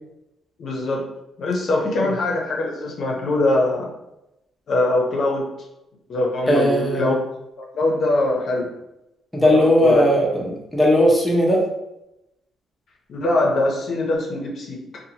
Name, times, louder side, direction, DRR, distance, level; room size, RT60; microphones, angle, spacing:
voice 1, 0.6-1.1 1.4-3.9 4.7-5.5 6.1-7.1 7.7-8.7 9.4-10.1 13.1-14.8, left 2 dB, 60° left, -1 dB, 0.6 m, -22 dB
voice 2, 6.5-7.1 9.3-11.6, equal, 5° left, -3 dB, 0.7 m, -17 dB
2.7 x 2.5 x 2.8 m, 0.90 s
cardioid pair, 90°, 0 cm